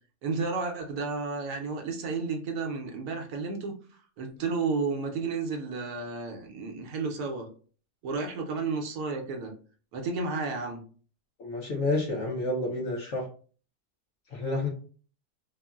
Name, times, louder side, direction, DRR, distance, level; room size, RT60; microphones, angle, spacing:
voice 1, 0.2-3.8 4.2-7.5 8.0-9.5 9.9-10.8, right 4 dB, 70° right, 1.1 m, -32 dB
voice 2, 11.4-13.3 14.3-14.7, left 2 dB, 60° left, 0.9 m, -29 dB
3.6 x 2.0 x 2.3 m
omnidirectional pair, 1.8 m